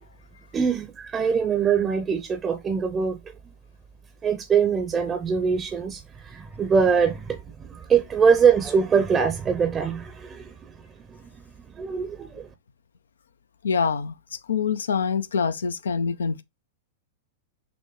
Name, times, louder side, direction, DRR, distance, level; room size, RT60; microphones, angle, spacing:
voice 1, 0.5-3.4 4.2-11.4 11.7-12.5, right 6 dB, 20° right, 0.6 m, -23 dB
voice 2, 13.6-14.1 14.5-16.4, left 6 dB, 70° left, 0.4 m, -25 dB
6.0 x 2.2 x 3.7 m
figure-of-eight pair, 100°, 0 cm